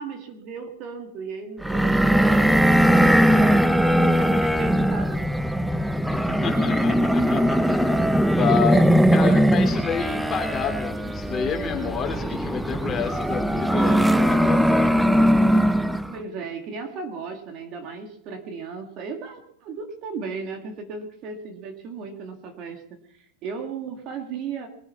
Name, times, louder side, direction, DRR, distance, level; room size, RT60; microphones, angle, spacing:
voice 1, 0.0-3.8 4.2-5.3 16.1-24.7, right 5 dB, 40° right, 5 dB, 1.9 m, -36 dB
sound 1, 1.6-16.1, equal, ahead, 0.5 m, -20 dB
voice 2, 6.1-14.9, left 7 dB, 20° left, 2 dB, 3.3 m, -30 dB
22.0 x 9.0 x 5.7 m, 0.70 s
supercardioid pair, 140°, 0 cm